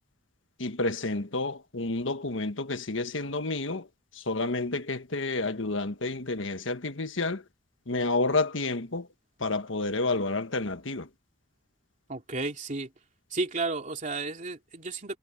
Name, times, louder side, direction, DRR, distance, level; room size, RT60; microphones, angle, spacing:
voice 1, 0.6-3.9 4.1-7.4 7.9-9.1 9.4-11.1, left 3 dB, 75° left, 1.5 m, -30 dB
voice 2, 12.1-12.9 13.3-15.2, right 3 dB, 40° right, 2.9 m, -32 dB
head